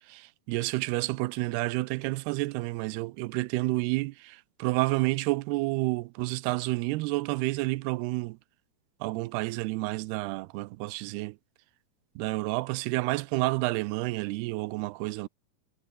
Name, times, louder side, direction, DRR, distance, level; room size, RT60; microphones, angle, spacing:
voice 1, 0.1-8.4 9.0-11.4 12.2-15.3, right 21 dB, 85° right, 2.6 m, -30 dB
omnidirectional pair, 4.6 m